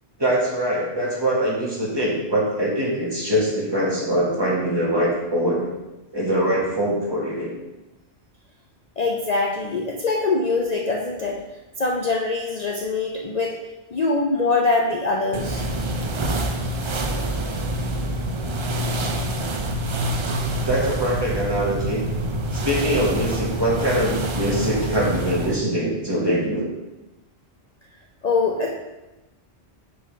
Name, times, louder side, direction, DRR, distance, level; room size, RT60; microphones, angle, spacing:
voice 1, 0.2-5.7 6.1-7.5 20.7-22.0 22.5-26.7, equal, 25° right, -4 dB, 1.3 m, -23 dB
voice 2, 9.0-11.4 11.8-13.6 13.9-15.6 28.2-28.7, left 3 dB, 45° left, -1 dB, 0.6 m, -23 dB
sound 1, 15.3-25.6, right 1 dB, 45° right, 0.4 m, -26 dB
5.0 x 4.7 x 5.0 m, 1.0 s
omnidirectional pair, 1.1 m